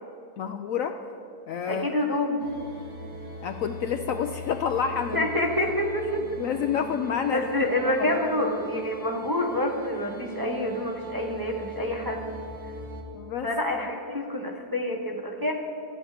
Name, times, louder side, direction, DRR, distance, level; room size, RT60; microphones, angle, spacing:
voice 1, 0.4-1.0 1.5-2.0 3.4-5.3 6.2-7.5 7.9-8.2 13.1-13.5, left 7 dB, 70° left, 7 dB, 0.8 m, -29 dB
voice 2, 1.7-2.4 5.1-6.4 7.3-12.2 13.4-15.5, left 1 dB, 15° right, 1 dB, 0.8 m, -27 dB
sound 1, 2.4-13.0, right 1 dB, 60° right, 1.9 m, -40 dB
13.0 x 8.9 x 6.6 m, 2.5 s
omnidirectional pair, 1.8 m